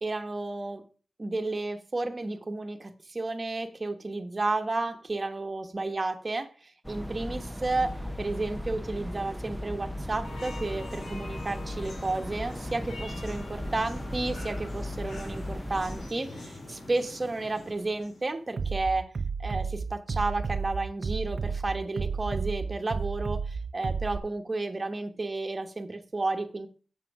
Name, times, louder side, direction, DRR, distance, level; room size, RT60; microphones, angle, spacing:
voice 1, 0.0-0.8 1.2-7.9 8.2-19.1 19.4-26.7, right 2 dB, 30° right, 6 dB, 1.2 m, -32 dB
sound 1, 6.8-16.1, left 1 dB, ahead, 0.5 m, -37 dB
sound 2, 10.2-18.5, left 2 dB, 75° left, 3.3 m, -44 dB
Bass drum, 18.6-24.2, right 5 dB, 55° right, 0.7 m, -32 dB
7.6 x 7.3 x 4.9 m, 0.38 s
wide cardioid pair, 100°, 0 cm